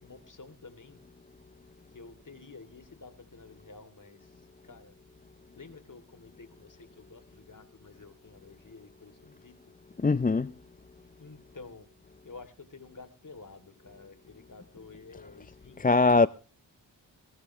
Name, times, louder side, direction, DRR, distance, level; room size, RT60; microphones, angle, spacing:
voice 1, 0.0-1.0 1.9-4.9 5.5-9.5 11.2-11.9 12.2-16.3, left 3 dB, 45° left, 3.1 m, -50 dB
voice 2, 10.0-10.5 15.8-16.3, left 3 dB, 20° left, 0.6 m, -22 dB
20.5 x 11.0 x 3.2 m
cardioid pair, 45°, 44 cm